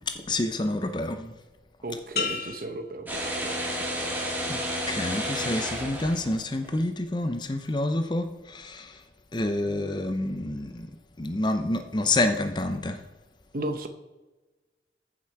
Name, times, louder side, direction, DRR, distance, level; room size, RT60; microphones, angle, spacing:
voice 1, 0.1-1.3 4.5-4.6 4.9-9.0 9.3-10.9 11.2-13.0, left 2 dB, 25° left, 8 dB, 0.6 m, -28 dB
voice 2, 1.8-3.9 13.5-13.9, right 1 dB, 55° right, 7 dB, 0.8 m, -35 dB
sound 1, 2.2-3.9 4.4-4.9, left 6 dB, 60° left, 1.1 m, -35 dB
sound 2, 3.1-6.7, equal, 10° right, 2.0 m, -31 dB
15.0 x 6.0 x 4.6 m, 1.2 s
head